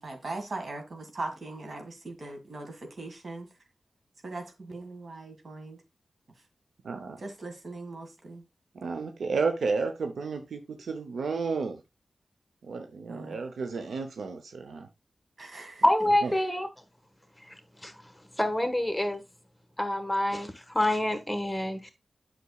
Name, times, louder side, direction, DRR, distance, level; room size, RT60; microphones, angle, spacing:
voice 1, 0.0-3.5 4.2-5.8 7.2-8.4 13.1-13.4 15.4-15.8, right 2 dB, 65° right, 1.9 m, -40 dB
voice 2, 6.8-7.2 8.7-11.8 12.6-14.9 16.2-16.3, right 4 dB, 85° right, 0.8 m, -32 dB
voice 3, 15.8-16.7 17.8-17.9 18.4-19.2 19.8-21.9, left 1 dB, 10° left, 1.4 m, -26 dB
8.3 x 6.0 x 2.4 m
cardioid pair, 50°, 0 cm